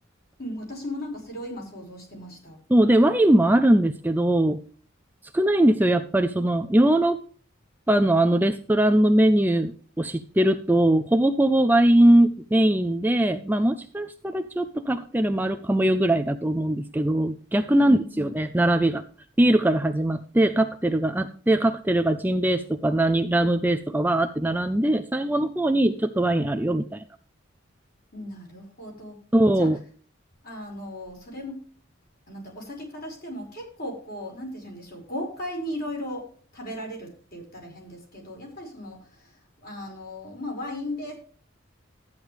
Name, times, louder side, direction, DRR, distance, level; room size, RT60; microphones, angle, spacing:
voice 1, 0.4-2.6 17.8-18.3 28.1-29.2 29.6-29.7 30.4-31.7 32.3-39.3 39.6-41.1, left 1 dB, 50° left, 0 dB, 5.2 m, -36 dB
voice 2, 2.7-4.6 5.3-7.2 7.9-9.7 10.0-19.0 19.4-27.0 29.3-29.8, right 1 dB, 10° right, 7 dB, 0.5 m, -21 dB
13.0 x 9.6 x 3.4 m, 0.43 s
head